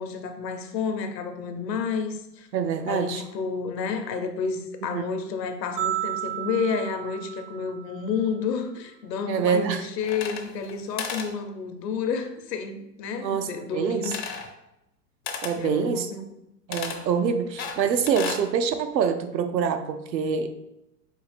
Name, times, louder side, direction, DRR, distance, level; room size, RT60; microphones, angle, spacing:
voice 1, 0.0-2.5 2.9-14.2 15.5-16.3, left 5 dB, 75° left, 6 dB, 0.8 m, -30 dB
voice 2, 2.5-3.2 4.9-5.2 9.3-9.9 13.2-14.1 15.4-16.1 16.7-20.5, right 7 dB, 85° right, 7 dB, 0.6 m, -25 dB
sound 1, 5.8-8.1, right 12 dB, 35° right, 0.5 m, -32 dB
sound 2, 10.0-10.7 11.0-11.3 14.0-14.5 15.3-15.6 16.7-17.0 17.6-18.5, left 6 dB, 35° left, 0.4 m, -33 dB
4.6 x 2.5 x 3.3 m, 0.87 s
hypercardioid pair, 105°, 50 cm